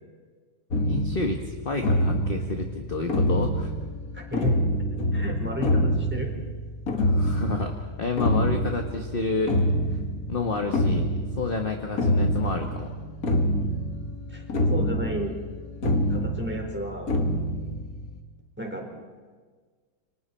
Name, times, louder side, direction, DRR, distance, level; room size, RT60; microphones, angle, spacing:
sound 1, 0.7-18.2, equal, 45° left, 2.3 m, -26 dB
voice 1, 0.8-3.7 7.0-9.6 9.9-10.0 10.3-11.0 11.4-12.9, left 3 dB, 30° left, 3 dB, 1.5 m, -29 dB
voice 2, 4.1-4.6 5.1-6.3 14.3-15.3 16.1-17.1 18.6-18.9, equal, 5° right, 1 dB, 4.3 m, -32 dB
29.0 x 25.0 x 4.5 m, 1.5 s
omnidirectional pair, 2.2 m